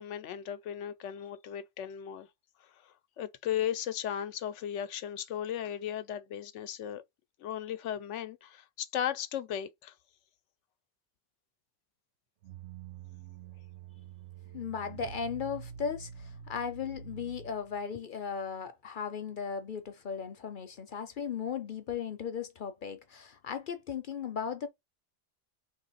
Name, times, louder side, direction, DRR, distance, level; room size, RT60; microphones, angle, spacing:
voice 1, 0.0-2.3 3.2-7.0 7.4-9.9, left 10 dB, 90° left, 0.9 m, -36 dB
sound 1, 12.4-17.9, right 7 dB, 75° right, 0.9 m, -47 dB
voice 2, 14.5-24.7, left 6 dB, 55° left, 0.7 m, -37 dB
3.6 x 3.1 x 4.0 m
omnidirectional pair, 1.2 m